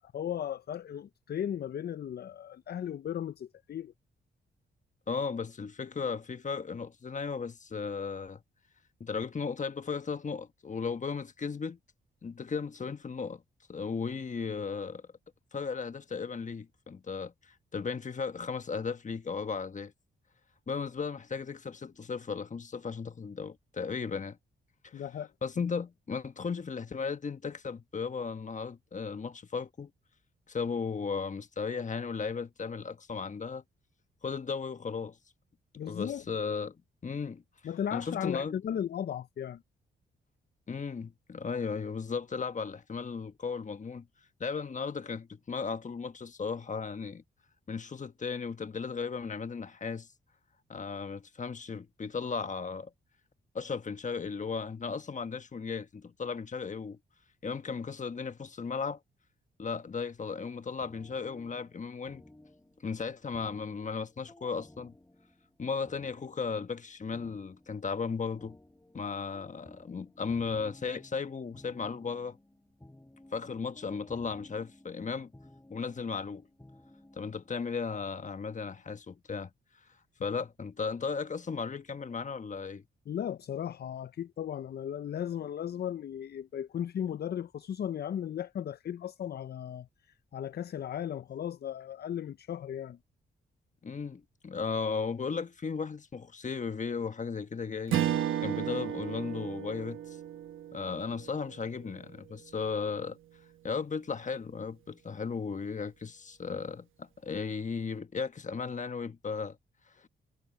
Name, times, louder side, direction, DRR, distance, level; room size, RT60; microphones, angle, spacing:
voice 1, 0.1-3.9 20.8-20.9 24.9-25.3 35.8-36.2 37.6-39.6 83.1-89.9 90.3-93.0, left 9 dB, 55° left, 0.5 m, -36 dB
voice 2, 5.1-8.4 9.0-11.8 12.2-13.4 13.7-15.0 15.5-19.9 20.7-24.4 24.8-25.0 25.4-29.9 30.5-33.6 34.2-35.2 35.8-36.8 37.0-37.4 37.9-38.6 40.7-44.1 44.4-47.2 47.7-50.1 50.7-52.9 53.5-57.0 57.4-59.0 59.6-62.2 62.8-64.9 65.6-68.6 68.9-72.4 73.3-75.3 75.7-76.5 77.1-79.5 80.2-82.8 93.8-98.0 98.4-100.2 100.7-103.2 103.6-109.6 110.0-110.1, left 5 dB, 40° left, 1.3 m, -36 dB
sound 1, 60.8-77.5, left 1 dB, 10° left, 7.9 m, -57 dB
Strum, 97.9-102.5, right 11 dB, 85° right, 1.2 m, -34 dB
cardioid pair, 75°, 20 cm